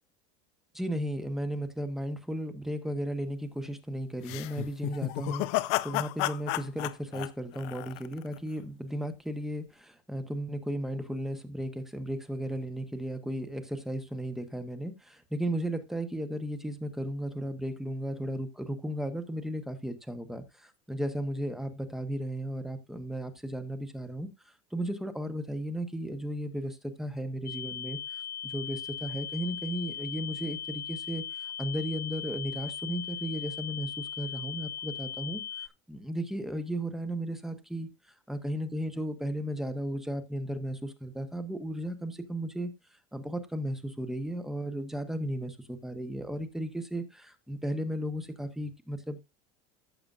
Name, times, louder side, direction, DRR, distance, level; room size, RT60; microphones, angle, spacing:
voice 1, 0.7-24.3 24.7-28.0 28.4-37.9 38.3-42.7 43.1-49.2, right 1 dB, ahead, 1.0 m, -35 dB
sound 1, 4.2-8.4, left 19 dB, 65° left, 0.6 m, -32 dB
sound 2, 27.5-35.7, left 9 dB, 15° left, 0.5 m, -39 dB
14.5 x 6.8 x 2.5 m
cardioid pair, 155°, 15 cm